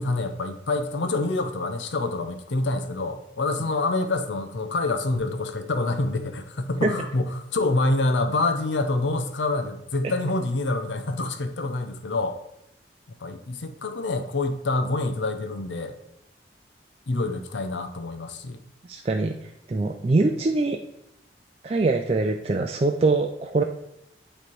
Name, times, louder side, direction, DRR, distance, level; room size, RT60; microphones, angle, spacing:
voice 1, 0.0-12.4 13.2-16.0 17.1-18.6, left 2 dB, 90° left, 8 dB, 0.7 m, -26 dB
voice 2, 18.9-20.8 21.6-23.6, right 3 dB, 35° right, 3 dB, 0.3 m, -23 dB
8.5 x 3.3 x 4.5 m, 0.81 s
head